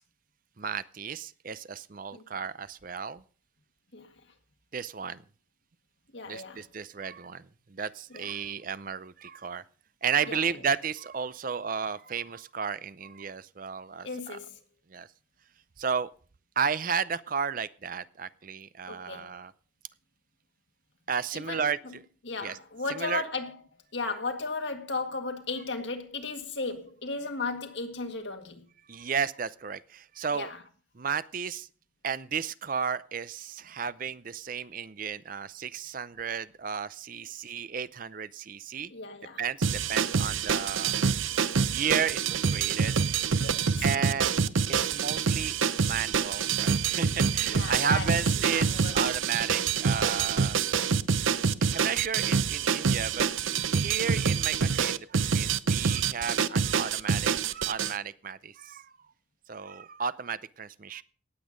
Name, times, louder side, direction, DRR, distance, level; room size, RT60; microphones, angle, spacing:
voice 1, 0.6-3.2 4.7-5.2 6.3-7.4 7.7-9.6 10.0-14.4 14.9-15.1 15.8-16.1 16.6-19.5 21.1-21.8 22.4-22.6 22.9-23.2 28.9-30.5 31.0-31.7 32.0-38.9 39.4-40.9 41.7-42.9 43.3-43.4 43.8-44.3 44.7-50.6 51.7-53.3 53.7-58.9 59.5-61.0, right 6 dB, 45° right, 0.5 m, -33 dB
voice 2, 6.1-6.7 8.1-8.3 10.3-10.5 14.0-14.6 18.9-19.3 21.3-21.9 22.2-23.6 23.9-28.6 30.3-30.6 38.9-39.4 43.4-43.9 47.4-49.0, left 3 dB, 60° left, 1.8 m, -36 dB
sound 1, 39.6-57.9, right 6 dB, 80° right, 0.7 m, -26 dB
18.0 x 8.3 x 5.1 m
head